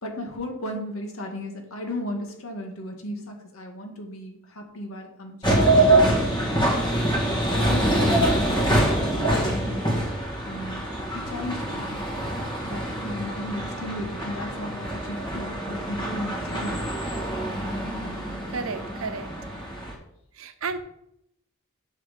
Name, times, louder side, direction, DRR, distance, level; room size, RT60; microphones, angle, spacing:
voice 1, 0.0-5.7 7.5-8.9 9.2-9.9 10.4-10.9 11.1-12.0 12.6-16.8, left 1 dB, 90° left, 3 dB, 1.7 m, -35 dB
sound 1, 5.4-19.9, right 1 dB, 20° left, 1.8 m, -25 dB
voice 2, 7.8-8.1 18.5-19.3 20.4-20.8, right 4 dB, 85° right, 10 dB, 0.8 m, -33 dB
6.5 x 6.4 x 5.0 m, 0.76 s
head